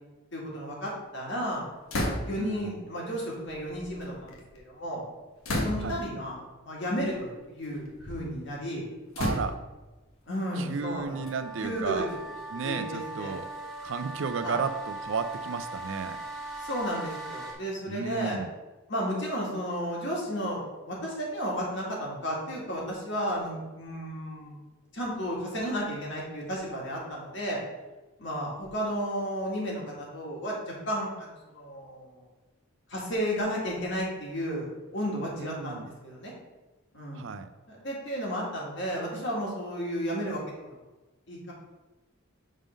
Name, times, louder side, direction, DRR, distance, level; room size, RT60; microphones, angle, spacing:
voice 1, 0.3-1.7 1.9-5.0 5.5-8.9 10.3-11.2 11.6-12.0 12.6-13.3 14.4-14.6 16.6-18.4 18.9-24.6 24.9-27.6 28.2-32.2 32.9-36.3 36.9-37.2 37.7-40.8 41.3-41.5, equal, 55° left, -3 dB, 1.9 m, -33 dB
sound 1, 1.9-2.6 3.5-4.6 5.4-6.1 6.9-7.2 7.6-8.3 9.1-9.9 10.6-12.6, left 1 dB, 85° left, 1.2 m, -33 dB
voice 2, 2.4-2.8 5.8-6.0 9.2-9.6 10.6-12.1 12.5-13.5 13.8-16.2 17.9-18.5 35.4-35.9 37.1-37.5, right 5 dB, 65° right, 10 dB, 0.4 m, -33 dB
sound 2, 11.1-17.5, right 2 dB, ahead, 1.3 m, -39 dB
6.4 x 3.7 x 5.2 m, 1.1 s
head